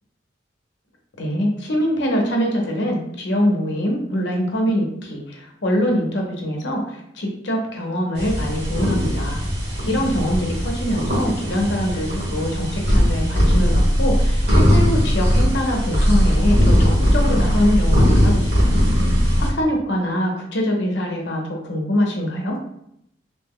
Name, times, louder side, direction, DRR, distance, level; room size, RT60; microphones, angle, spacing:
voice 1, 1.2-9.4 9.9-18.8 19.4-22.6, equal, 65° left, 1 dB, 0.7 m, -23 dB
sound 1, 8.2-19.5, equal, 60° right, 1.3 m, -18 dB
2.8 x 2.1 x 3.5 m, 0.75 s
head